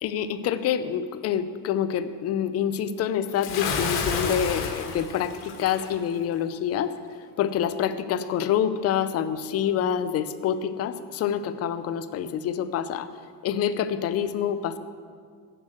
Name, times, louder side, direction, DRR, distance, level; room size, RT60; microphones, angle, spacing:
voice 1, 0.0-6.9 7.4-13.1 13.4-14.8, left 9 dB, 40° left, 12 dB, 0.5 m, -27 dB
Bathtub (filling or washing) / Splash splatter, 3.4-5.9, left 5 dB, 90° left, 1.6 m, -30 dB
8.0 x 7.2 x 7.8 m, 2.1 s
cardioid pair, 135°, 38 cm